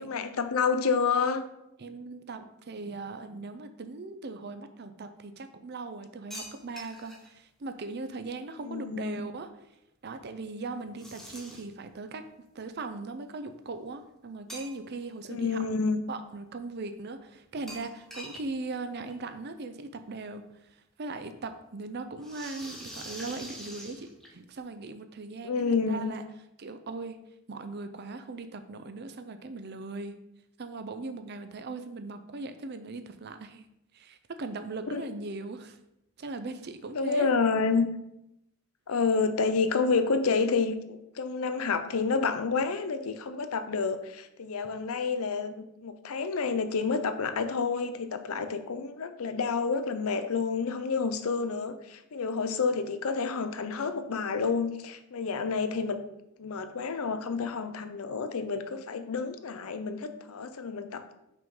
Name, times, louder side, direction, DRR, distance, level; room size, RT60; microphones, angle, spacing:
voice 1, 0.0-1.4 8.6-9.2 15.3-16.0 25.4-26.1 34.9-35.1 36.9-37.9 38.9-56.0 56.4-61.1, left 4 dB, 80° left, 9 dB, 0.6 m, -29 dB
voice 2, 1.8-9.5 10.0-12.3 12.5-15.6 16.1-26.2 26.6-27.2 27.5-30.1 30.6-33.6 33.9-35.8 36.2-37.3, right 3 dB, 50° right, 9 dB, 0.5 m, -39 dB
sound 1, 6.3-7.3 11.0-11.8 14.5-15.1 15.5-15.6 17.7-18.5 18.7-18.8 19.1-19.2 20.4-20.5 22.2-24.5, equal, ahead, 1.0 m, -44 dB
5.7 x 3.7 x 5.4 m, 0.84 s
head